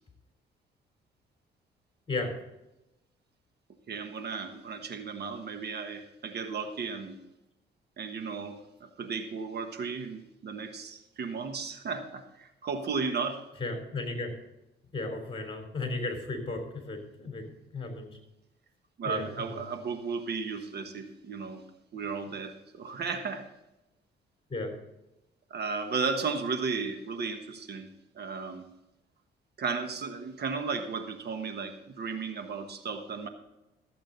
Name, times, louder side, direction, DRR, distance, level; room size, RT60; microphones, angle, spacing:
voice 1, 3.9-7.2 8.0-13.4 19.0-21.6 21.9-23.5 25.5-27.9 28.1-28.7 29.6-33.3, right 5 dB, 55° right, 7 dB, 1.3 m, -34 dB
voice 2, 13.6-14.3 14.9-18.2 19.0-19.6 24.5-24.7, left 2 dB, 25° left, 3 dB, 3.7 m, -35 dB
14.0 x 8.4 x 4.0 m, 0.93 s
cardioid pair, 90°, 20 cm